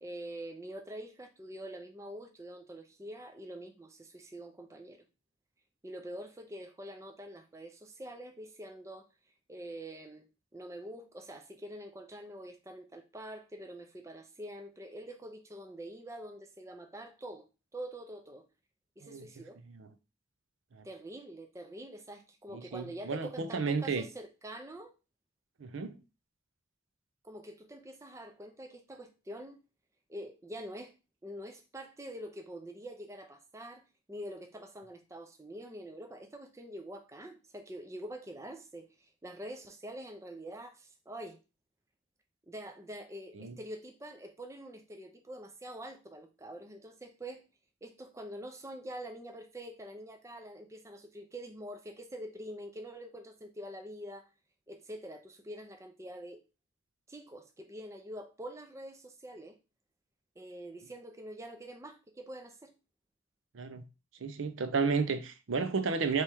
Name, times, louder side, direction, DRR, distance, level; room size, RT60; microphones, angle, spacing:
voice 1, 0.0-5.0 5.8-9.1 9.5-10.3 10.5-17.5 17.7-18.4 19.0-19.6 20.8-24.9 27.2-29.6 30.1-30.9 31.2-33.8 34.1-41.4 42.5-47.4 47.8-54.3 54.7-56.4 57.1-59.6 60.4-62.7, right 1 dB, 15° right, 0.4 m, -45 dB
voice 2, 19.0-19.9 20.7-20.8 22.5-24.1 25.6-25.9 43.3-43.5 63.5-63.9 64.2-66.2, right 5 dB, 80° right, 0.6 m, -33 dB
3.4 x 3.0 x 4.4 m
head